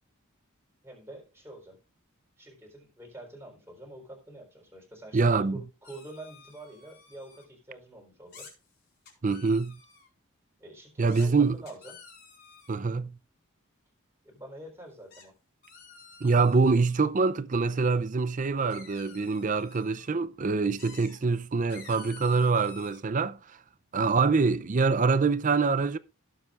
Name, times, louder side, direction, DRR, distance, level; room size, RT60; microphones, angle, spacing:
voice 1, 0.8-1.8 2.4-5.2 5.5-8.5 10.6-12.0 14.2-15.3, right 1 dB, 10° right, 3.9 m, -47 dB
voice 2, 5.1-5.6 9.2-9.8 11.0-11.6 12.7-13.2 16.2-23.4 23.9-26.0, right 4 dB, 35° right, 0.5 m, -25 dB
sound 1, 5.8-7.5 8.3-8.5 9.1-10.1 11.1-11.3 11.7-12.8 15.1-15.3 15.6-17.0 18.7-20.1 20.8-21.2 21.7-23.0, left 5 dB, 50° left, 4.8 m, -51 dB
17.0 x 7.7 x 2.4 m
head